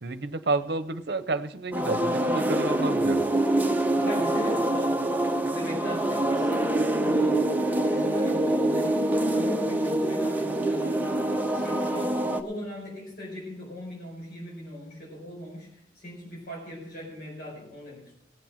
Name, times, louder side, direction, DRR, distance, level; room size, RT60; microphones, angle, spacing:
voice 1, 0.0-3.3, right 3 dB, 60° right, 12 dB, 0.9 m, -30 dB
sound 1, 1.7-12.4, right 1 dB, 10° right, 0.9 m, -25 dB
voice 2, 4.0-7.5 7.7-18.1, left 1 dB, 50° left, -3 dB, 4.8 m, -40 dB
18.5 x 7.5 x 5.8 m, 0.75 s
head